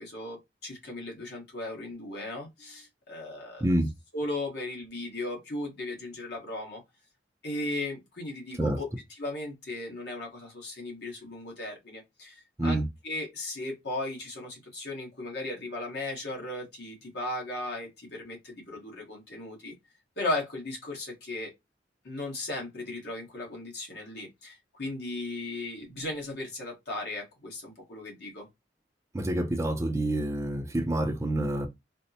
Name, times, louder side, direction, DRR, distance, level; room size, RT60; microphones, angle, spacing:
voice 1, 0.0-3.7 4.1-6.8 7.4-19.7 20.2-21.5 22.0-28.5, left 2 dB, 65° left, 1.3 m, -36 dB
voice 2, 29.1-31.7, right 1 dB, 15° right, 0.4 m, -27 dB
4.1 x 2.0 x 2.7 m
head